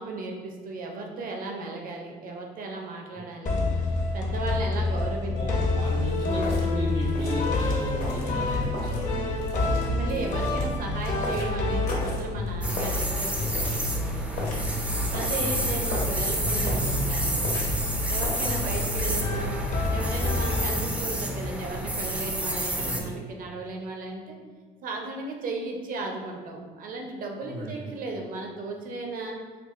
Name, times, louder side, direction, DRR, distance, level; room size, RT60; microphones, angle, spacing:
voice 1, 0.0-3.6 4.1-5.7 9.6-14.7 15.1-17.7 18.1-19.6 19.9-24.4 24.8-29.4, right 3 dB, 55° right, 1 dB, 0.6 m, -35 dB
sound 1, 3.5-21.3, left 2 dB, 50° left, 0.7 m, -28 dB
voice 2, 5.2-9.4 15.2-15.6 20.6-20.9 22.7-23.2 27.4-27.9, equal, 85° right, -6 dB, 1.5 m, -35 dB
sound 2, 5.8-18.6, left 2 dB, 65° left, 1.0 m, -39 dB
sound 3, 12.6-23.0, right 1 dB, 10° right, 0.4 m, -30 dB
4.5 x 2.3 x 2.5 m, 1.5 s
cardioid pair, 110°, 17 cm